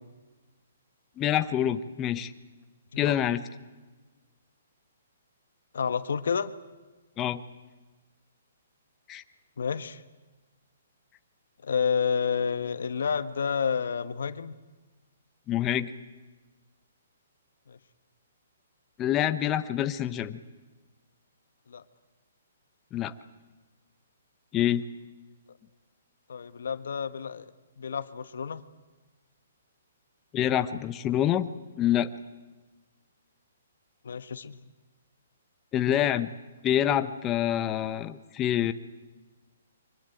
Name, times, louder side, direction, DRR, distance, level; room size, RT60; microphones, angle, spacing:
voice 1, 1.2-2.3 3.0-3.4 7.2-7.4 9.1-9.2 15.5-15.9 19.0-20.4 22.9-23.1 24.5-24.8 30.3-31.5 31.8-32.1 35.7-36.3 36.6-38.7, left 11 dB, 20° left, 10 dB, 0.8 m, -26 dB
voice 2, 5.7-6.5 9.6-10.0 11.6-14.5 17.7-17.8 21.7-21.8 26.3-27.5 27.8-28.6 34.0-34.6, left 6 dB, 75° left, 13 dB, 1.3 m, -30 dB
24.5 x 20.5 x 9.1 m, 1.3 s
hypercardioid pair, 155°, 0 cm